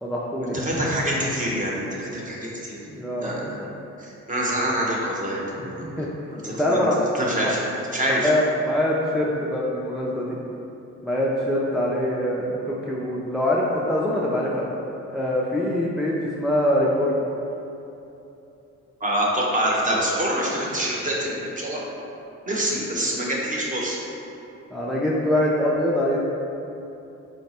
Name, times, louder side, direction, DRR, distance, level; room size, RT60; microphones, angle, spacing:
voice 1, 0.0-0.6 2.9-3.6 5.6-5.7 6.0-6.1 6.5-7.0 7.4-7.5 8.1-10.4 11.0-14.6 15.1-17.1 24.7-26.2, left 1 dB, ahead, -5 dB, 0.3 m, -24 dB
voice 2, 0.5-2.8 3.2-3.6 4.0-5.8 6.3-6.9 7.1-7.6 7.9-8.3 19.0-21.8 22.4-24.0, right 1 dB, 25° right, -4 dB, 0.8 m, -26 dB
4.0 x 2.1 x 4.2 m, 2.9 s
cardioid pair, 90°, 30 cm